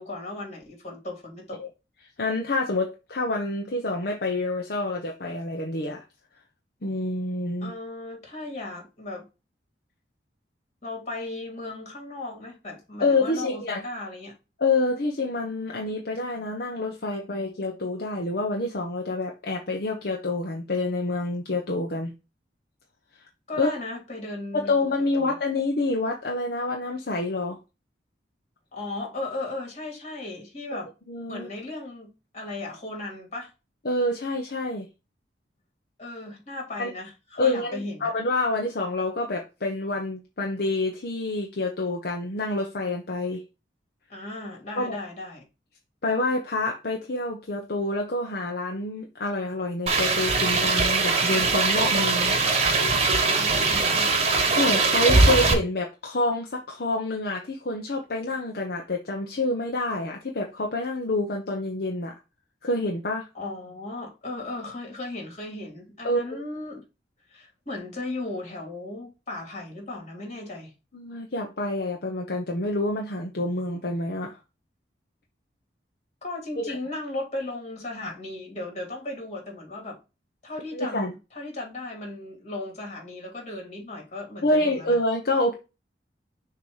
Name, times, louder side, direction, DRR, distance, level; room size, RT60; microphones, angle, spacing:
voice 1, 0.0-1.6 7.6-9.3 10.8-14.3 23.5-24.9 25.2-25.4 28.7-30.9 31.3-33.5 36.0-38.1 44.1-45.4 53.3-54.3 63.3-66.8 67.3-70.7 76.2-80.0 80.4-85.0, left 2 dB, 40° left, 2.9 m, -36 dB
voice 2, 2.2-6.0 6.8-7.7 13.0-13.8 14.6-22.1 23.6-23.7 24.5-27.6 30.7-30.8 31.1-31.5 33.8-34.9 36.8-36.9 37.4-43.4 44.7-45.0 46.0-52.3 54.6-62.1 62.6-63.3 66.0-66.4 70.9-74.4 76.6-76.8 80.7-81.1 84.4-85.5, left 2 dB, 60° left, 0.9 m, -27 dB
sound 1, 49.9-55.5, right 3 dB, 35° right, 1.1 m, -21 dB
6.7 x 2.9 x 4.8 m
head